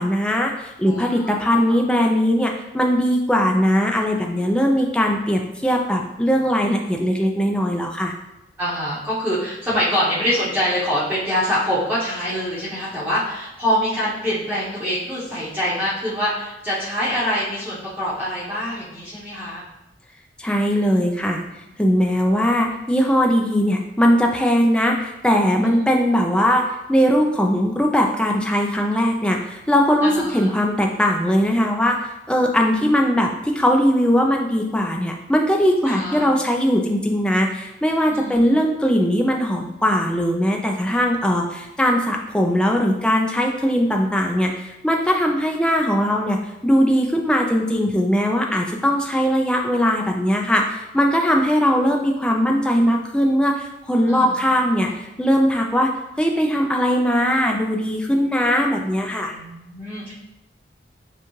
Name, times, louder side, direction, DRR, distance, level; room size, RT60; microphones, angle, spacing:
voice 1, 0.0-8.1 20.4-21.4 21.8-26.6 26.9-46.4 46.6-55.9 56.2-59.3, equal, 5° left, 1 dB, 0.4 m, -20 dB
voice 2, 0.9-1.8 8.6-19.6 20.8-21.0 22.0-22.1 25.6-25.8 30.0-30.5 35.8-36.3 38.1-38.4 54.0-54.4 54.7-54.9 59.3-60.1, equal, 10° right, -12 dB, 1.0 m, -25 dB
6.8 x 2.3 x 3.1 m, 0.91 s
head